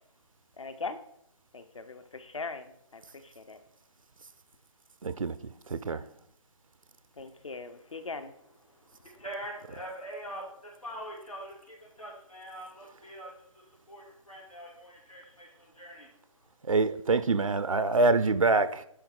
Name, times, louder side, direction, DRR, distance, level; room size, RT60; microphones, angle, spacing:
voice 1, 0.6-1.0 1.5-3.6 7.2-8.3, left 4 dB, 65° left, 0.8 m, -40 dB
voice 2, 5.0-6.1 16.7-18.8, right 3 dB, 75° right, 0.5 m, -26 dB
voice 3, 8.7-16.1, right 1 dB, 90° left, 2.8 m, -44 dB
9.6 x 3.6 x 4.7 m
figure-of-eight pair, 145°, 17 cm